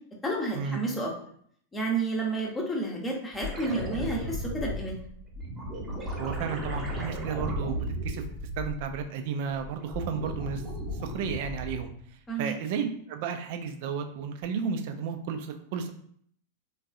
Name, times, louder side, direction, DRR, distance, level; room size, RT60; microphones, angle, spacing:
voice 1, 0.2-1.1 1.7-4.9 12.3-12.6, right 2 dB, 15° left, -1 dB, 0.8 m, -30 dB
sound 1, 3.3-9.1 9.5-12.0 14.4-14.5, equal, 15° right, 0.9 m, -35 dB
voice 2, 6.2-8.2 8.6-10.6 11.0-11.9 12.4-15.9, right 6 dB, 50° right, 7 dB, 0.4 m, -33 dB
3.5 x 2.3 x 2.5 m, 0.64 s
figure-of-eight pair, 90°, 0 cm